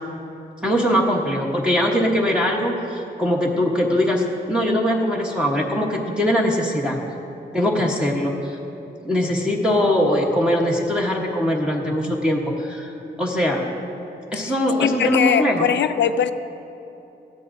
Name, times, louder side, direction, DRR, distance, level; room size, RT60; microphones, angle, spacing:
voice 1, 0.6-7.0 7.5-8.6 9.0-13.6 14.3-15.7, equal, 5° right, -2 dB, 1.0 m, -21 dB
voice 2, 14.8-16.3, left 8 dB, 80° left, 10 dB, 0.5 m, -21 dB
19.0 x 13.5 x 2.6 m, 2.9 s
wide cardioid pair, 165°, 18 cm